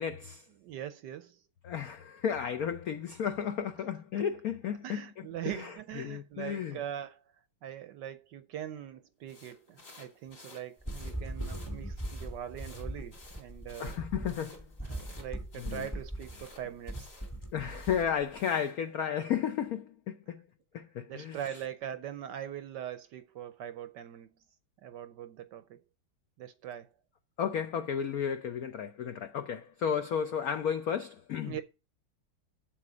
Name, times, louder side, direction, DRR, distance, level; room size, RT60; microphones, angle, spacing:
voice 1, 0.0-0.4 1.6-5.0 5.5-5.7 6.0-6.8 13.8-14.6 15.6-15.9 17.5-20.4 20.7-21.4 27.4-31.5, left 8 dB, 80° left, 0.8 m, -33 dB
voice 2, 0.6-1.4 4.7-7.2 7.6-13.9 14.8-17.1 21.1-24.3 24.8-25.8 26.4-26.9 31.4-31.6, right 10 dB, 70° right, 1.1 m, -42 dB
sound 1, 9.3-18.8, left 2 dB, 50° left, 3.4 m, -55 dB
sound 2, 10.8-18.4, right 1 dB, 10° left, 1.2 m, -40 dB
7.8 x 7.6 x 5.0 m
omnidirectional pair, 2.3 m